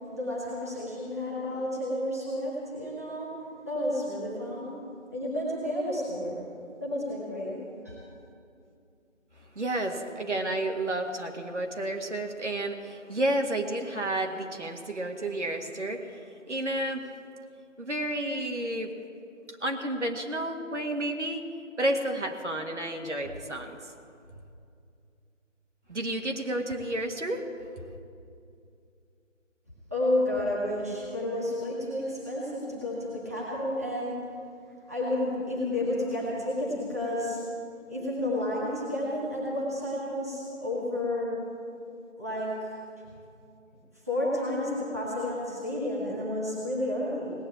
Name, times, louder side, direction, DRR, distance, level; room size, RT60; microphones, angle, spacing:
voice 1, 0.1-3.3 3.6-4.7 5.1-6.4 6.8-7.6 7.8-8.0 29.9-34.2 34.9-37.4 37.9-41.3 42.2-42.7 44.1-47.3, left 1 dB, 15° right, -8 dB, 1.5 m, -31 dB
voice 2, 9.6-16.2 16.5-17.1 17.8-19.0 19.6-21.4 21.8-23.8 25.9-27.5, right 1 dB, 65° right, 3 dB, 1.8 m, -31 dB
18.0 x 8.7 x 8.7 m, 2.5 s
figure-of-eight pair, 175°, 38 cm